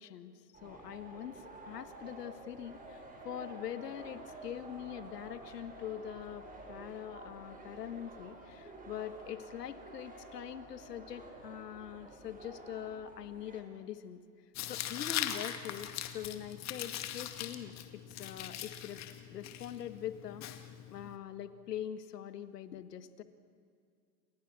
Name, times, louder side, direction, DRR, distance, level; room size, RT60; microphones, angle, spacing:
voice 1, 0.0-14.2 14.7-19.0 19.3-23.2, left 10 dB, 75° left, 11 dB, 1.9 m, -43 dB
sound 1, 0.5-13.6, right 2 dB, 15° right, 5.6 m, -50 dB
Tearing, 14.5-21.2, left 11 dB, 35° left, 2.2 m, -41 dB
29.0 x 27.5 x 6.3 m, 2.2 s
hypercardioid pair, 110°, 49 cm